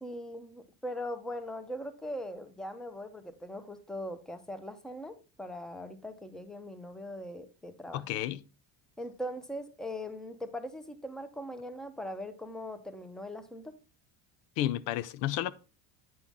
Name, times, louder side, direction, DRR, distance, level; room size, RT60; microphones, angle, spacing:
voice 1, 0.0-8.0 9.0-13.8, left 1 dB, ahead, 0.8 m, -40 dB
voice 2, 7.9-8.4 14.6-15.5, left 13 dB, 80° left, 0.7 m, -31 dB
9.3 x 5.7 x 3.6 m
cardioid pair, 135°, 42 cm